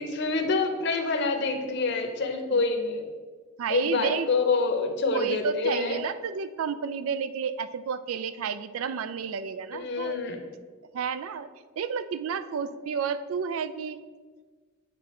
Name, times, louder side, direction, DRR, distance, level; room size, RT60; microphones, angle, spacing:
voice 1, 0.0-3.0 3.7-6.0 9.7-10.4, left 3 dB, 55° left, 5 dB, 0.7 m, -27 dB
voice 2, 3.6-4.3 5.1-10.2 10.9-11.5 11.8-14.0, right 6 dB, 90° right, 13 dB, 0.4 m, -31 dB
8.3 x 3.7 x 4.3 m, 1.5 s
head